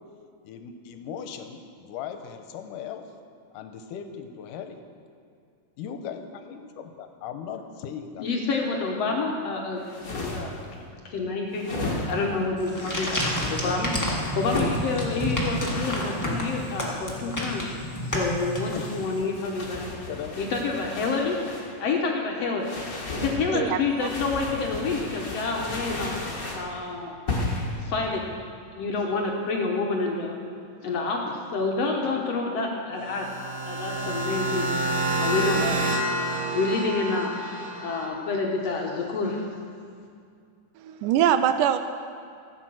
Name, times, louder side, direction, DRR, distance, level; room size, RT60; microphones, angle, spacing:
voice 1, 0.4-3.1 3.5-4.8 5.8-8.3 18.7-19.3 20.1-20.4, left 7 dB, 80° left, 7 dB, 2.3 m, -38 dB
voice 2, 8.2-10.6 11.0-13.2 13.5-13.9 14.3-17.7 18.0-20.0 20.4-21.4 21.8-22.7 23.1-26.1 26.5-27.2 27.8-28.3 28.8-30.4 30.8-33.3 33.6-34.7 35.2-35.8 36.5-39.4, left 3 dB, 65° left, 0 dB, 1.7 m, -28 dB
sound 1, 9.8-10.6 11.5-12.4 13.1-13.5 14.3-14.8 15.5-16.9 17.9-21.7 22.6-23.4 24.0-26.7 27.3-27.7, left 2 dB, 35° left, 1.6 m, -34 dB
sound 2, 12.6-19.1, left 1 dB, 15° left, 0.5 m, -30 dB
voice 3, 23.5-24.1 40.8-41.8, right 10 dB, 80° right, 10 dB, 1.9 m, -23 dB
sound 3, 33.0-38.1, right 1 dB, 55° right, 1.6 m, -28 dB
14.5 x 8.6 x 6.2 m, 2.3 s
omnidirectional pair, 3.8 m